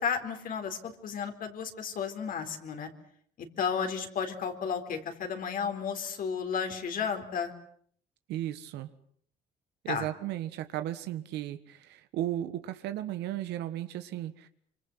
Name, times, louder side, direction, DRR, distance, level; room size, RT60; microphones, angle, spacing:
voice 1, 0.0-2.9 3.4-7.5 9.9-10.1, left 6 dB, 55° left, 5 dB, 4.1 m, -33 dB
voice 2, 8.3-8.9 9.8-14.5, right 13 dB, 85° right, 10 dB, 1.7 m, -35 dB
25.5 x 25.0 x 8.1 m, 0.62 s
cardioid pair, 110°, 17 cm